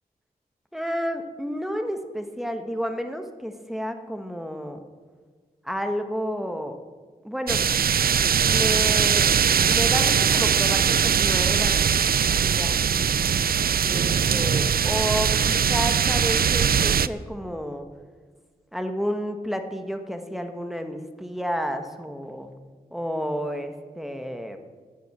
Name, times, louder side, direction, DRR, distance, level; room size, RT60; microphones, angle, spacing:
voice 1, 0.7-4.8 5.6-6.8 7.2-7.6 8.4-9.3 9.7-13.1 13.8-17.9 18.7-22.5 22.9-24.6, equal, ahead, 6 dB, 1.3 m, -31 dB
sound 1, 7.5-17.1, right 7 dB, 70° right, 0.5 m, -21 dB
12.5 x 9.3 x 8.9 m, 1.5 s
wide cardioid pair, 100°, 16 cm